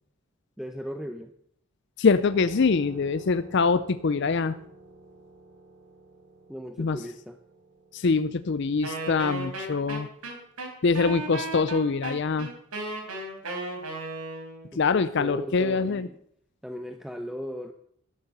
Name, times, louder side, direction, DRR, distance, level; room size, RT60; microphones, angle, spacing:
voice 1, 0.6-1.3 6.5-7.4 14.7-16.2 16.6-17.7, equal, ahead, 7 dB, 0.7 m, -36 dB
voice 2, 2.0-4.5 6.8-7.0 7.9-10.1 10.8-12.5 14.7-16.1, left 4 dB, 50° left, 13 dB, 0.5 m, -24 dB
sound 1, 2.3-11.5, right 1 dB, 65° right, 4.5 m, -51 dB
Wind instrument woodwind instrument, 8.8-14.7, right 2 dB, 90° right, 3.9 m, -35 dB
13.0 x 11.5 x 6.7 m, 0.67 s
head